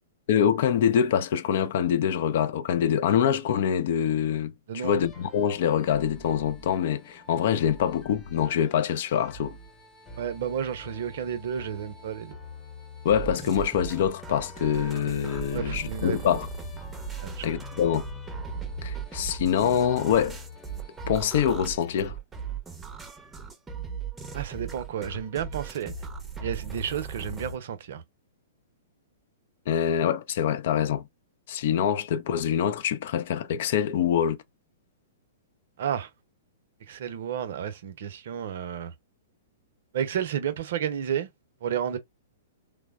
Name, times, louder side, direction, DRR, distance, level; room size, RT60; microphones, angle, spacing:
voice 1, 0.3-9.6 13.0-16.5 17.4-18.0 18.8-20.4 21.1-22.2 29.7-31.0 31.5-34.4, left 9 dB, 60° left, 0.4 m, -25 dB
voice 2, 4.7-5.0 10.2-12.4 15.5-16.4 17.2-17.4 24.3-25.9 26.4-28.0 35.8-36.1 36.9-38.9 39.9-41.3 41.6-42.0, right 9 dB, 60° right, 0.6 m, -31 dB
sound 1, 5.0-22.1, left 2 dB, 20° left, 0.9 m, -47 dB
sound 2, 13.1-27.6, right 5 dB, 10° right, 0.6 m, -37 dB
3.2 x 2.0 x 2.3 m
hypercardioid pair, 115°, 0 cm